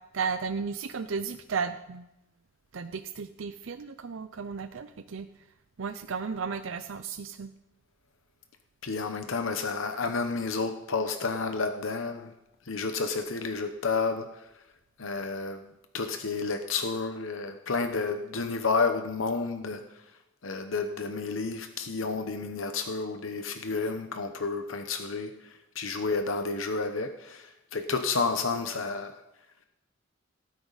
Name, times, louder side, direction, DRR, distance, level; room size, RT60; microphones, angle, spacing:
voice 1, 0.1-2.0 2.7-5.3 5.8-7.5, right 5 dB, 75° right, 10 dB, 0.6 m, -34 dB
voice 2, 8.8-12.3 12.7-14.5 15.0-15.7 15.9-19.9 20.4-29.1, left 4 dB, 80° left, 7 dB, 0.9 m, -31 dB
18.0 x 9.5 x 4.1 m, 0.89 s
head